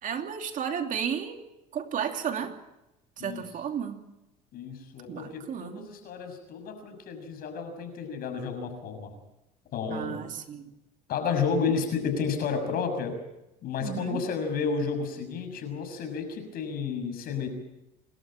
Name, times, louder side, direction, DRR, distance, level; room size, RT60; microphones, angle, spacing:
voice 1, 0.0-1.4 1.7-2.6 3.2-4.0 5.1-5.9 9.9-10.7 13.8-14.2, right 8 dB, 45° right, 5 dB, 2.8 m, -33 dB
voice 2, 4.5-9.1 9.7-10.2 11.1-13.2 13.6-17.5, left 5 dB, 55° left, 7 dB, 6.4 m, -31 dB
27.5 x 13.0 x 8.9 m, 0.92 s
supercardioid pair, 95°, 18 cm